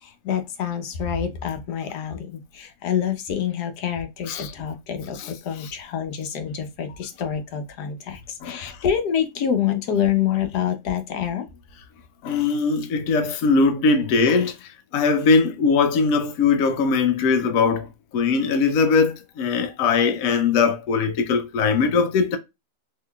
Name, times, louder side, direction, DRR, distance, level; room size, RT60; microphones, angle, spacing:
voice 1, 0.0-11.5, left 9 dB, 90° left, 1.3 m, -27 dB
voice 2, 8.4-8.8 12.2-14.5 14.9-17.9 18.1-22.4, left 4 dB, 65° left, 1.0 m, -20 dB
3.7 x 3.1 x 2.2 m
omnidirectional pair, 1.7 m